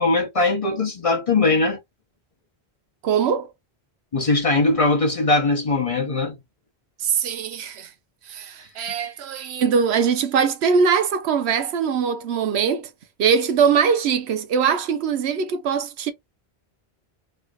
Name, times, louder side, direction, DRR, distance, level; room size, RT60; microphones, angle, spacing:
voice 1, 0.0-1.8 4.1-6.4 8.8-8.9, left 3 dB, 35° left, 0.7 m, -20 dB
voice 2, 3.0-3.5 7.0-7.9 8.3-12.9 13.2-16.1, right 6 dB, 85° right, 0.9 m, -21 dB
3.2 x 3.1 x 2.3 m
omnidirectional pair, 1.1 m